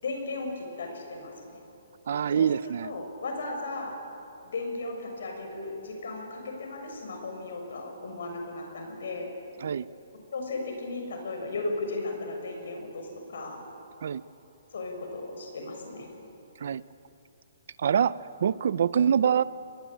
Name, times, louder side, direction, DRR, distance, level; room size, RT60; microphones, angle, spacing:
voice 1, 0.0-1.6 2.3-3.9 4.4-9.3 10.3-13.6 14.7-16.1, left 2 dB, 60° left, 3 dB, 6.6 m, -36 dB
voice 2, 2.1-2.9 9.6-9.9 14.0-14.2 16.6-16.8 17.8-19.4, right 8 dB, 50° right, 18 dB, 0.5 m, -25 dB
26.0 x 21.0 x 9.0 m, 2.9 s
hypercardioid pair, 175°, 0 cm